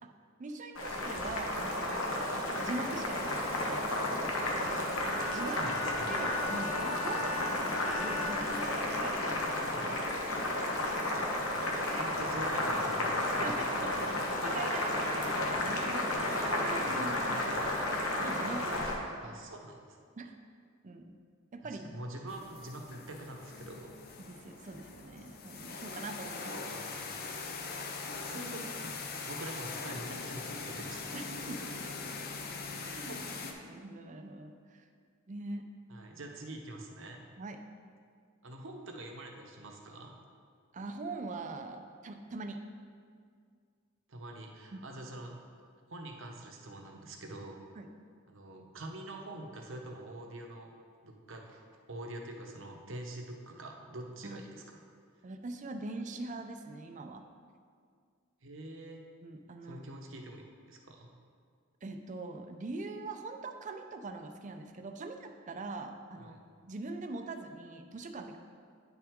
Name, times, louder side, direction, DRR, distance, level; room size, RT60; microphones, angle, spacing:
voice 1, 0.4-3.9 4.5-4.9 5.2-5.6 6.1-8.7 9.0-9.9 11.5-12.2 13.4-17.2 18.2-19.4 20.2-20.4 20.8-21.2 21.5-21.8 24.2-26.7 31.1-31.9 32.8-33.2 33.7-34.8 35.3-35.7 37.4-37.6 40.7-42.6 44.7-44.8 47.8-47.9 54.2-54.4 55.2-57.2 59.2-59.8 61.8-66.4 66.6-68.4, right 3 dB, 35° right, 6 dB, 0.5 m, -42 dB
Boiling, 0.7-19.0, left 1 dB, 85° left, 1.1 m, -32 dB
Bowed string instrument, 4.9-9.4, left 2 dB, 10° left, 1.4 m, -40 dB
voice 2, 5.4-6.1 9.7-9.9 12.0-13.6 16.8-17.5 19.2-19.8 21.6-24.0 26.7-27.0 28.3-28.6 29.3-31.3 33.1-33.5 35.9-37.2 38.4-40.2 44.1-45.4 45.9-47.6 48.3-50.7 51.0-54.8 58.4-59.0 59.6-61.1 66.2-66.4, right 1 dB, 65° right, 2 dB, 0.9 m, -45 dB
sound 1, 22.3-33.5, left 4 dB, 50° left, 0.6 m, -41 dB
9.1 x 5.8 x 3.6 m, 2.1 s
head